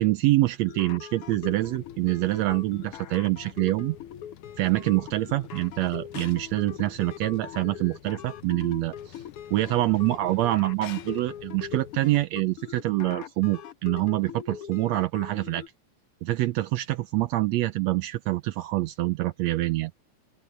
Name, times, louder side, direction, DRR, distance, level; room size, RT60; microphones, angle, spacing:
voice 1, 0.0-4.0 4.6-9.1 9.5-15.6 16.2-19.9, right 17 dB, 80° right, 1.5 m, -26 dB
sound 1, 0.7-15.7, left 9 dB, 60° left, 1.6 m, -41 dB
sound 2, 1.3-12.3, left 11 dB, 80° left, 2.5 m, -49 dB
open air
omnidirectional pair, 3.6 m